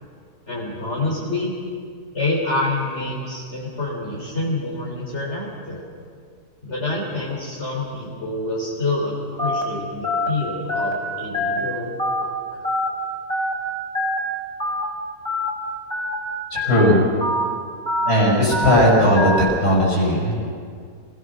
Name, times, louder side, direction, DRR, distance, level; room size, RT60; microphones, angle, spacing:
voice 1, 0.5-1.5 2.1-5.8 6.6-12.6, left 2 dB, 45° left, -5 dB, 3.8 m, -27 dB
Telephone, 9.4-9.6 10.0-10.3 10.7-10.9 11.3-11.6 12.0-12.2 12.6-12.9 13.3-13.5 13.9-14.2 14.6-14.8 15.2-15.5 15.9-16.1 16.5-16.8 17.2-17.4 17.9-18.1 18.5-18.7 19.2-19.4, left 1 dB, 5° left, 4.1 m, -23 dB
voice 2, 16.5-17.0 18.0-19.3 19.6-20.3, left 1 dB, 70° left, -4 dB, 6.6 m, -17 dB
26.5 x 18.5 x 6.3 m, 2.1 s
omnidirectional pair, 1.7 m